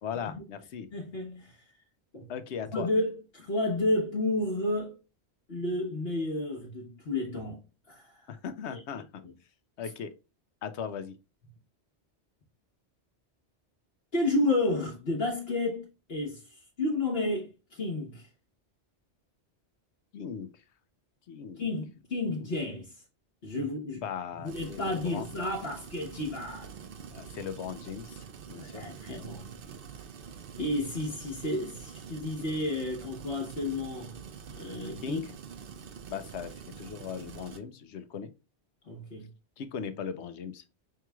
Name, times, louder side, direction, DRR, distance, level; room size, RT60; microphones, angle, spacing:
voice 1, 0.0-0.9 2.3-2.9 8.3-9.2 9.8-10.1 10.6-11.2 20.1-20.5 21.3-21.6 22.3-22.4 23.9-25.3 27.1-28.8 35.0-35.3 36.1-38.3 39.6-40.6, left 7 dB, 80° left, 0.9 m, -38 dB
voice 2, 0.9-1.6 2.1-2.3 2.7-5.0 5.5-7.6 7.9-8.3 8.7-8.8 14.1-18.3 21.6-22.9 23.4-24.0 24.4-26.7 28.5-29.5 30.6-34.2 34.5-35.2 38.9-39.3, left 2 dB, 60° left, 1.3 m, -31 dB
sound 1, 24.4-37.6, right 7 dB, 60° right, 0.8 m, -46 dB
5.8 x 3.0 x 2.2 m
omnidirectional pair, 1.1 m